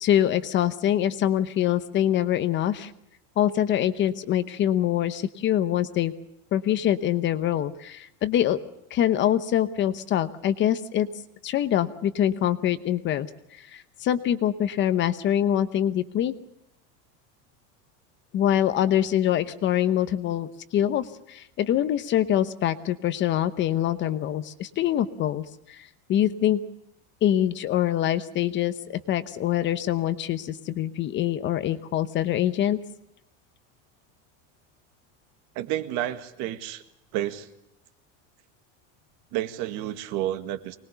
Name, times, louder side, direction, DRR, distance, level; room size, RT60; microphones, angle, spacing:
voice 1, 0.0-2.9 3.4-6.1 6.5-8.6 8.9-11.1 11.4-13.3 13.5-16.3 18.3-26.6 27.2-32.8, left 11 dB, 30° left, 14 dB, 0.9 m, -24 dB
voice 2, 35.6-36.8 37.1-37.5 39.3-40.8, right 13 dB, 55° right, 10 dB, 1.9 m, -30 dB
24.5 x 21.0 x 6.9 m, 0.81 s
cardioid pair, 165°, 35 cm